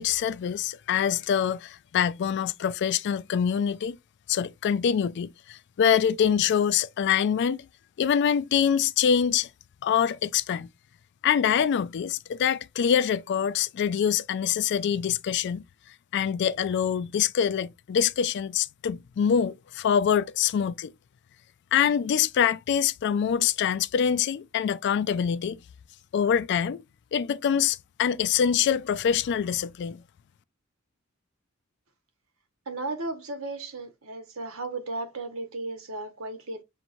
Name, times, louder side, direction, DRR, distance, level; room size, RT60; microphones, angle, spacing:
voice 1, 0.0-4.0 4.3-7.6 8.0-9.5 9.8-10.7 11.2-15.6 16.1-20.9 21.7-25.6 26.1-26.8 27.1-30.0, left 8 dB, 55° left, 0.3 m, -25 dB
voice 2, 32.7-36.6, right 2 dB, 75° right, 1.1 m, -35 dB
6.5 x 3.0 x 2.5 m
head